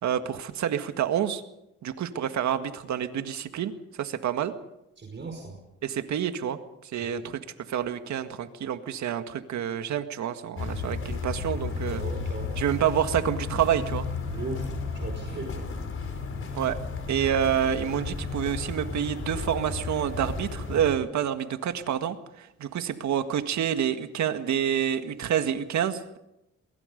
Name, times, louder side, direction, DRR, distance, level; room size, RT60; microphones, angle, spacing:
voice 1, 0.0-1.4 1.8-3.7 4.0-4.5 5.8-6.6 6.9-7.4 7.7-12.0 12.6-14.1 16.5-16.8 17.1-26.2, right 9 dB, 70° right, 8 dB, 1.8 m, -28 dB
voice 2, 5.0-5.6 7.1-7.3 11.9-12.6 14.3-14.7 14.9-15.6, right 3 dB, 40° right, 2 dB, 5.0 m, -37 dB
sound 1, 10.6-21.0, left 4 dB, 45° left, 4.6 m, -33 dB
23.5 x 22.5 x 5.3 m, 0.89 s
cardioid pair, 90°, 30 cm